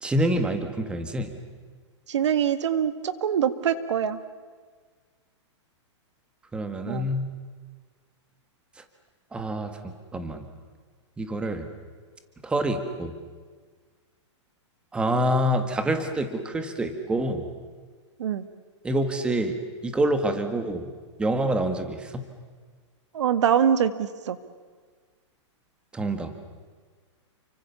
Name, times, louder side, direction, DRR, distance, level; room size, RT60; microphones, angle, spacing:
voice 1, 0.0-1.3 6.5-7.3 8.8-8.9 9.3-10.4 11.2-11.7 12.4-13.1 14.9-17.5 18.8-19.6 19.8-20.9 21.2-22.2 25.9-26.3, right 1 dB, 5° right, 7 dB, 1.7 m, -26 dB
voice 2, 2.1-4.2 6.9-7.1 18.2-18.4 23.1-24.4, right 8 dB, 70° right, 12 dB, 1.9 m, -24 dB
30.0 x 24.5 x 7.1 m, 1.5 s
hypercardioid pair, 165°, 15 cm